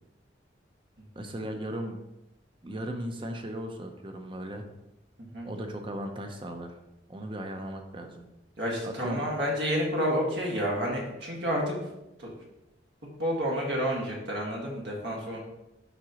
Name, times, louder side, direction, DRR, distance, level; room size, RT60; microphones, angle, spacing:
voice 1, 1.1-2.0 2.6-4.7 5.4-6.8 7.1-8.2 8.8-9.2, right 1 dB, 25° right, 4 dB, 0.7 m, -37 dB
voice 2, 8.6-11.8 12.2-12.3 13.2-15.4, equal, 65° right, -2 dB, 1.8 m, -29 dB
11.0 x 3.9 x 3.0 m, 0.92 s
head